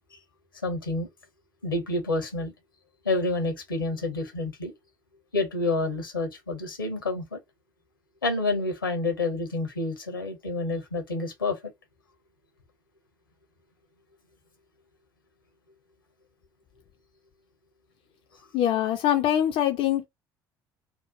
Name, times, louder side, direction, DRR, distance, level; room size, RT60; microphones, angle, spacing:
voice 1, 0.6-1.1 1.6-2.5 3.0-4.7 5.3-7.4 8.2-11.7, left 2 dB, 90° left, 0.8 m, -28 dB
voice 2, 18.5-20.1, left 11 dB, 55° left, 0.5 m, -23 dB
2.8 x 2.1 x 2.6 m
figure-of-eight pair, 55°, 11 cm